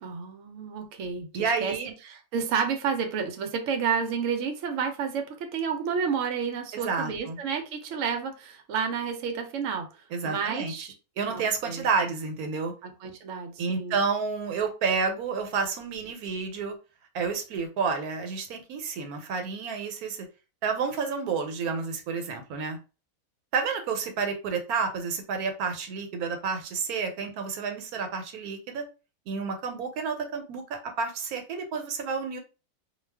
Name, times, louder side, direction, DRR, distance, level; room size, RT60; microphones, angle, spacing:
voice 1, 0.0-1.8 2.0-9.9 10.2-10.9 11.3-11.9 12.8-14.0, right 6 dB, 70° right, 5 dB, 0.9 m, -30 dB
voice 2, 1.3-1.9 6.7-7.4 10.1-10.7 11.2-12.7 13.6-16.8 17.1-20.3 20.6-22.8 23.5-28.8 29.3-32.4, right 5 dB, 85° right, 5 dB, 1.1 m, -30 dB
2.4 x 2.3 x 3.3 m, 0.32 s
omnidirectional pair, 1.5 m